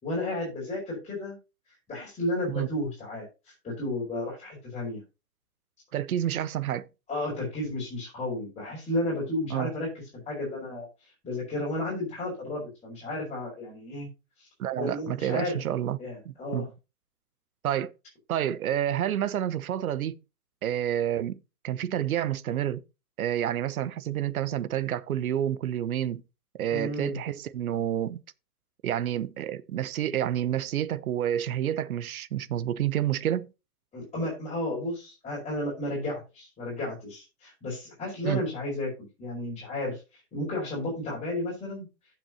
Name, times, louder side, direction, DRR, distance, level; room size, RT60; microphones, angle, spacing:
voice 1, 0.0-1.4 1.9-5.0 7.1-14.1 14.4-14.5 14.7-15.6 16.0-16.7 26.7-27.2 33.9-38.9 39.2-41.9, left 1 dB, 15° left, 4.8 m, -33 dB
voice 2, 5.9-6.9 9.5-9.7 14.6-16.0 16.2-16.7 17.6-17.9 18.3-20.2 20.6-22.8 23.2-26.2 26.6-28.2 28.8-33.5 38.2-38.4, right 11 dB, 65° right, 0.8 m, -29 dB
15.5 x 6.0 x 2.9 m
hypercardioid pair, 125°, 47 cm